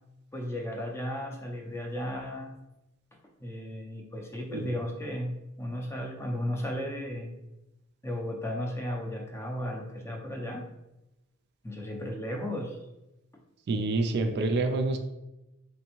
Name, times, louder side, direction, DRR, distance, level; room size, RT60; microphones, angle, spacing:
voice 1, 0.3-2.6 3.4-7.3 8.0-10.7 11.6-12.8, equal, 10° left, 1 dB, 0.5 m, -35 dB
voice 2, 13.7-15.0, right 3 dB, 50° right, 6 dB, 0.3 m, -27 dB
3.5 x 3.1 x 2.9 m, 0.94 s
head